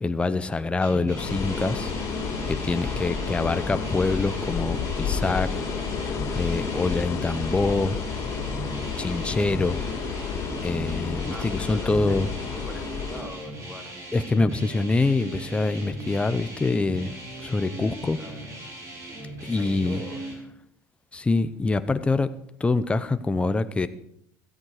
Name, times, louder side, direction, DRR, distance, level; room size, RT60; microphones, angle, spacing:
voice 1, 0.0-1.9 2.5-5.7 6.3-8.0 9.0-9.8 10.6-12.3 14.1-18.2 19.4-20.0 21.1-22.3 22.6-23.9, left 3 dB, 10° left, 11 dB, 0.8 m, -25 dB
sound 1, 0.8-20.3, right 1 dB, 35° right, 5.7 m, -39 dB
sound 2, 1.2-13.2, left 5 dB, 30° left, 4.0 m, -30 dB
voice 2, 11.3-12.2 12.5-13.9 18.2-18.5 19.6-20.2, left 1 dB, 5° right, 4 dB, 2.7 m, -42 dB
16.5 x 13.5 x 4.9 m, 0.72 s
cardioid pair, 145°, 10 cm